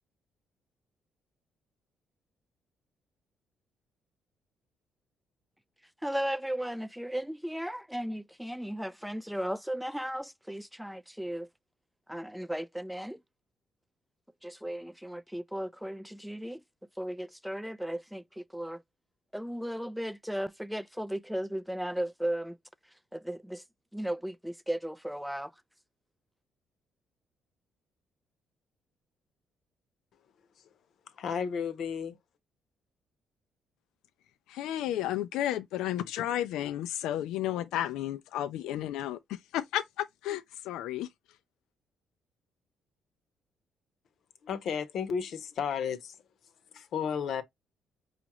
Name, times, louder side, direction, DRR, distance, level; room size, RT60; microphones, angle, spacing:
voice 1, 6.0-11.5 12.1-13.2 14.4-16.6 17.0-18.8 19.3-22.6 23.1-23.6 23.9-25.5, right 1 dB, ahead, 0.3 m, -35 dB
voice 2, 31.1-32.2 44.4-46.2 46.7-47.4, left 7 dB, 65° left, 0.8 m, -33 dB
voice 3, 34.5-41.1, left 12 dB, 85° left, 0.3 m, -32 dB
5.0 x 2.4 x 2.9 m
cardioid pair, 90°, 0 cm